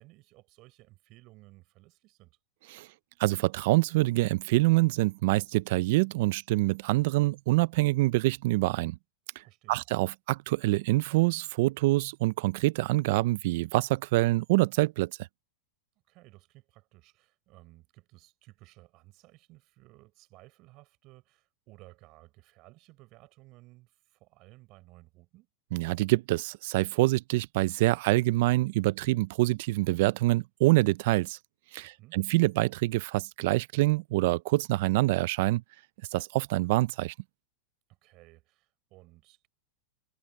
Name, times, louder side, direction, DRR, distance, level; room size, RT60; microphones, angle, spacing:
voice 1, 0.0-2.4 9.4-9.9 16.1-25.5 31.8-32.2 37.9-39.5, right 20 dB, 45° right, 5.8 m, -56 dB
voice 2, 3.2-9.0 9.7-15.1 25.7-31.4 31.7-35.6 36.1-37.1, right 19 dB, 60° right, 0.5 m, -26 dB
supercardioid pair, 140°, 0 cm